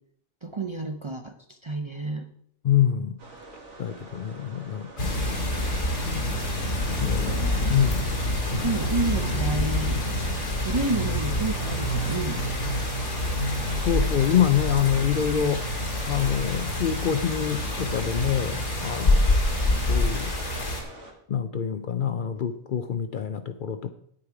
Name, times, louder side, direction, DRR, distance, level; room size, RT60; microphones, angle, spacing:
voice 1, 0.4-2.3 7.0-7.7 8.6-10.0 10.5-12.7 15.3-15.6, right 2 dB, 30° right, 5 dB, 0.6 m, -30 dB
voice 2, 2.6-3.2 3.8-5.2 7.0-7.4 7.7-8.1 8.5-8.7 13.8-15.6 16.1-19.4 19.9-20.3 21.3-23.9, left 9 dB, 55° left, 10 dB, 0.6 m, -26 dB
sound 1, 3.2-21.1, right 2 dB, 75° right, 2.2 m, -46 dB
sound 2, 5.0-20.8, left 1 dB, 85° left, 2.6 m, -26 dB
9.9 x 8.5 x 4.7 m, 0.67 s
omnidirectional pair, 1.2 m